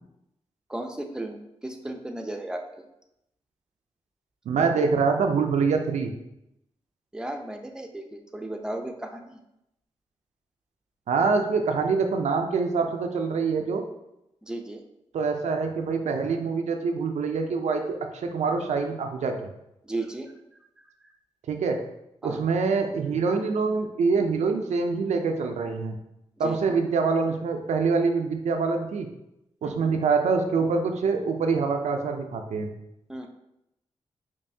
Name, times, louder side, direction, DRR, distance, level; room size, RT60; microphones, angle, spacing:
voice 1, 0.7-1.4 1.6-2.6 7.1-9.4 14.4-14.8 19.9-20.3 22.2-22.4 26.4-26.6 29.6-29.9 33.1-33.3, right 1 dB, 5° right, 4 dB, 0.5 m, -34 dB
voice 2, 4.5-6.1 11.1-13.8 15.1-19.4 21.5-21.8 22.2-26.0 26.4-29.1 29.6-32.7, right 4 dB, 85° right, 4 dB, 0.5 m, -25 dB
5.3 x 2.6 x 2.7 m, 0.85 s
cardioid pair, 65°, 12 cm